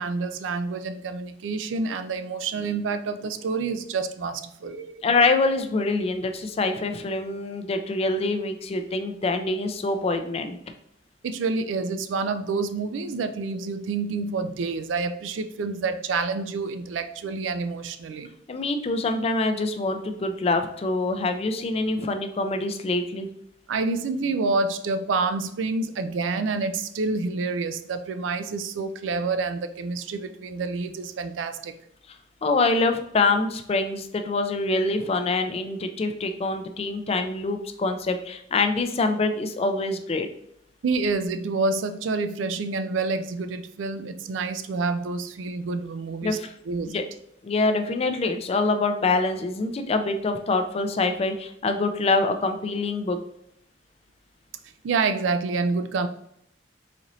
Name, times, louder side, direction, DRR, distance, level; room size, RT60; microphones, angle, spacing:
voice 1, 0.0-5.1 11.2-18.3 23.7-31.7 40.8-46.4 46.7-47.0 54.8-56.1, right 4 dB, 85° right, 9 dB, 0.4 m, -28 dB
voice 2, 5.0-10.6 18.5-23.3 32.4-40.3 46.2-46.5 46.9-47.0 47.4-53.2, left 3 dB, 35° left, 7 dB, 0.4 m, -25 dB
4.1 x 3.0 x 2.6 m, 0.74 s
head